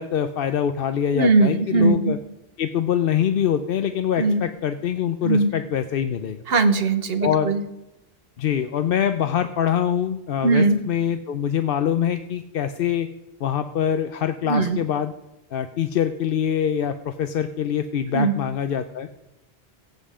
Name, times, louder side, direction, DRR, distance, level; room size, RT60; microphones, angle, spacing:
voice 1, 0.0-2.2 2.6-6.4 7.2-7.5 8.4-13.1 13.4-15.1 15.5-19.1, left 9 dB, 65° left, 9 dB, 0.8 m, -24 dB
voice 2, 1.1-2.1 4.2-4.4 5.2-5.5 6.5-7.6 10.4-10.8 14.4-14.8 18.1-18.3, right 3 dB, 70° right, 10 dB, 1.3 m, -19 dB
16.0 x 7.7 x 4.9 m, 0.93 s
omnidirectional pair, 1.0 m